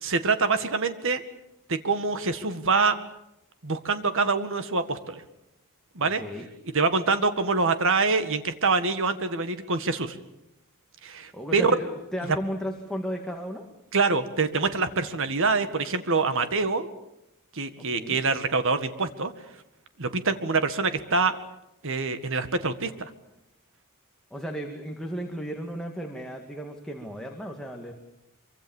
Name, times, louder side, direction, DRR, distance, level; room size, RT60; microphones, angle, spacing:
voice 1, 0.0-1.2 1.7-3.0 3.6-5.2 6.0-6.2 6.7-10.2 11.0-11.7 12.3-12.4 13.9-16.9 17.5-19.3 20.0-21.4 21.8-23.1, right 4 dB, 65° right, 10 dB, 1.9 m, -25 dB
voice 2, 6.0-6.5 11.3-13.7 17.8-18.2 24.3-27.9, equal, 5° left, 1 dB, 2.1 m, -34 dB
25.5 x 24.5 x 7.3 m, 0.86 s
head